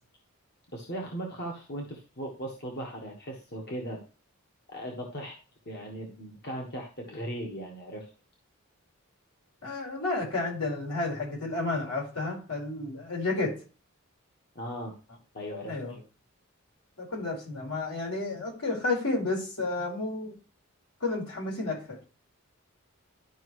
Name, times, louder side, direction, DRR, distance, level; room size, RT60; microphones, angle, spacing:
voice 1, 0.7-4.0 4.7-5.4 5.6-8.1 14.5-14.9 15.3-15.8, equal, 50° left, 0 dB, 1.4 m, -38 dB
voice 2, 9.6-13.6 15.7-16.0 17.0-20.3 21.0-22.0, left 2 dB, 80° left, 0 dB, 4.4 m, -31 dB
12.0 x 5.4 x 3.1 m, 0.34 s
head